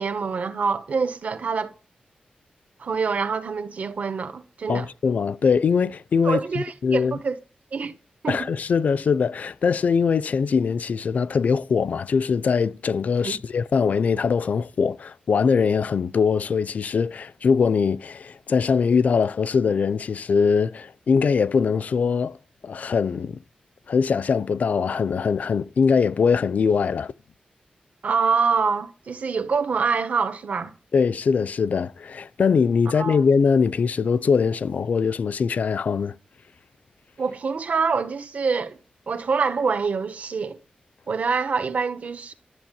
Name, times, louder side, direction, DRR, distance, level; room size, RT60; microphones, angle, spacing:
voice 1, 0.0-1.7 2.8-4.9 6.2-7.3 7.7-7.9 8.2-8.5 13.2-13.4 28.0-30.7 32.9-33.2 37.2-38.8 39.1-40.6 41.1-42.3, right 5 dB, 60° right, 1.5 m, -25 dB
voice 2, 4.7-7.2 8.3-22.4 22.6-23.4 23.9-27.1 30.9-36.1, left 5 dB, 65° left, 0.6 m, -22 dB
13.0 x 7.6 x 9.1 m
wide cardioid pair, 155°, 3 cm